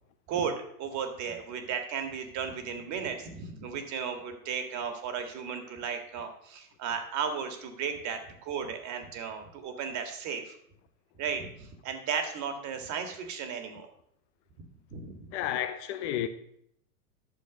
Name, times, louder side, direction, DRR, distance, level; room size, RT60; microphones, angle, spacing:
voice 1, 0.3-10.6 11.2-13.9 14.6-14.7 14.9-15.3, right 6 dB, 35° right, 2.0 m, -35 dB
voice 2, 15.3-16.3, left 11 dB, 45° left, 0.9 m, -31 dB
11.5 x 6.9 x 5.1 m
hypercardioid pair, 110°, 49 cm